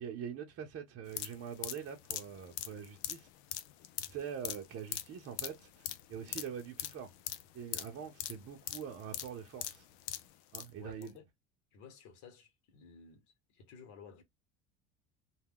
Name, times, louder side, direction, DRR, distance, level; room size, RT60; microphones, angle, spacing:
voice 1, 0.0-3.3 4.1-7.1 7.5-9.9 10.5-11.1, right 7 dB, 45° right, 0.7 m, -44 dB
sound 1, 1.1-10.7 11.0-11.1, left 12 dB, 85° left, 0.5 m, -42 dB
voice 2, 10.8-11.3 11.7-14.2, left 6 dB, 65° left, 1.1 m, -55 dB
2.2 x 2.2 x 3.5 m
supercardioid pair, 100°, 31 cm